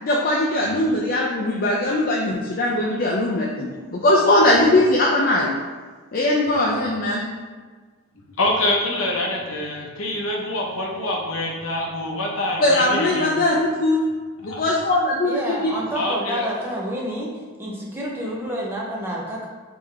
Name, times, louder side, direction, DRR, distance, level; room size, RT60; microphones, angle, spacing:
voice 1, 0.0-5.5 6.1-7.2 12.6-14.1 14.4-15.7, left 1 dB, 40° left, -3 dB, 0.4 m, -20 dB
voice 2, 8.2-13.3 14.4-14.6 16.0-16.4, left 1 dB, 60° left, -1 dB, 0.7 m, -25 dB
voice 3, 15.2-17.3 17.6-19.5, equal, 10° right, -4 dB, 0.6 m, -28 dB
3.5 x 3.5 x 3.2 m, 1.4 s
head